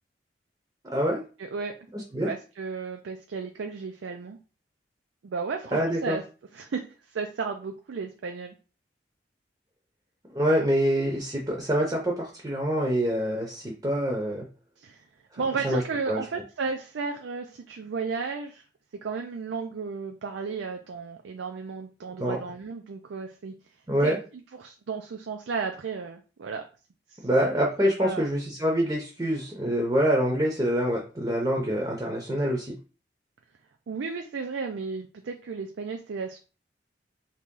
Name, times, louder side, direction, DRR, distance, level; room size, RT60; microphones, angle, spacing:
voice 1, 0.8-1.2 1.9-2.3 5.7-6.2 10.3-14.5 15.6-15.8 16.1-16.2 22.2-22.4 23.9-24.2 27.2-32.7, equal, 20° right, -1 dB, 0.7 m, -25 dB
voice 2, 1.4-1.7 2.2-4.4 5.2-6.2 6.5-8.6 14.8-15.0 15.4-18.6 19.0-23.5 24.0-24.1 24.5-26.7 27.1-27.3 28.0-28.3 33.9-36.4, right 5 dB, 90° right, 4 dB, 0.4 m, -34 dB
3.0 x 2.9 x 3.7 m, 0.35 s
head